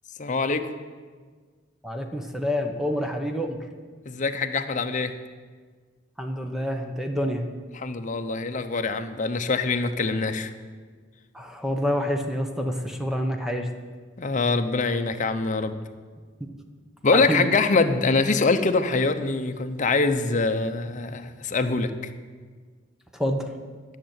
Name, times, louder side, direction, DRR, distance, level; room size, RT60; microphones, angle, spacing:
voice 1, 0.2-0.7 4.1-5.1 7.7-10.5 14.2-15.8 17.0-22.1, left 3 dB, 40° left, 8 dB, 0.8 m, -24 dB
voice 2, 1.8-3.6 6.2-7.4 11.3-13.7 16.4-16.5 17.1-17.5 23.1-23.5, equal, ahead, 4 dB, 0.8 m, -27 dB
10.5 x 6.7 x 8.8 m, 1.5 s
head